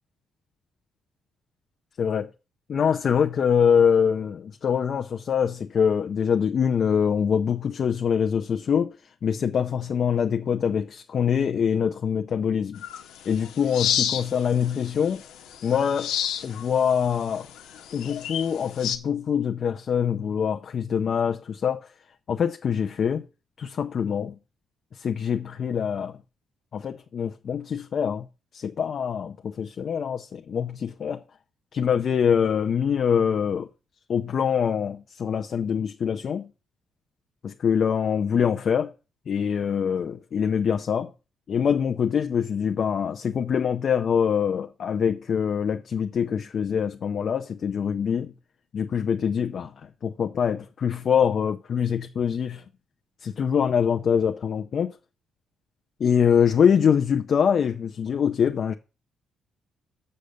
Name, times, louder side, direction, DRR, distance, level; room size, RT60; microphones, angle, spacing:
voice 1, 2.0-2.3 2.7-8.9 9.2-12.8 13.3-15.2 15.6-16.1 16.4-17.5 17.9-21.9 22.3-23.2 23.6-24.3 24.9-26.2 26.7-28.2 28.5-31.2 31.7-33.7 34.1-36.5 37.4-38.9 39.3-41.1 41.5-48.3 48.7-49.7 50.0-52.6 53.2-55.0 56.0-58.7, left 7 dB, 55° left, 0.7 m, -24 dB
sound 1, 12.8-19.0, left 9 dB, 90° left, 1.1 m, -32 dB
6.6 x 6.5 x 6.7 m
cardioid pair, 90°, 0 cm